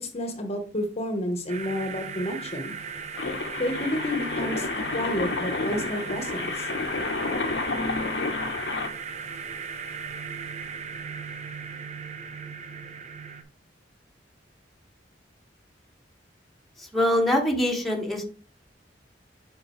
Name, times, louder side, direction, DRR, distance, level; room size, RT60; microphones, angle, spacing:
voice 1, 0.0-2.7 3.6-4.7 4.9-6.7, left 1 dB, 35° left, 6 dB, 1.0 m, -30 dB
sound 1, 1.5-13.4, right 6 dB, 40° right, 0.8 m, -37 dB
sound 2, 3.2-8.9, left 3 dB, 70° left, 0.9 m, -30 dB
voice 2, 16.8-18.2, left 1 dB, ahead, -1 dB, 1.3 m, -24 dB
8.2 x 5.3 x 3.1 m, 0.38 s
head